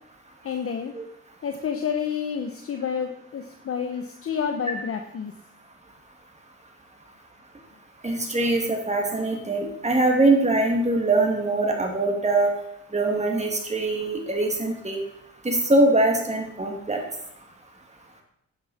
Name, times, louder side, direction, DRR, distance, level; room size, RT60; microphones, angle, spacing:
voice 1, 0.4-0.9 1.4-5.3, left 7 dB, 50° left, 6 dB, 1.0 m, -29 dB
voice 2, 8.0-12.5 12.9-15.0 15.4-17.0, right 2 dB, 20° right, 2 dB, 2.4 m, -22 dB
10.5 x 9.5 x 4.3 m, 0.77 s
cardioid pair, 90°, 30 cm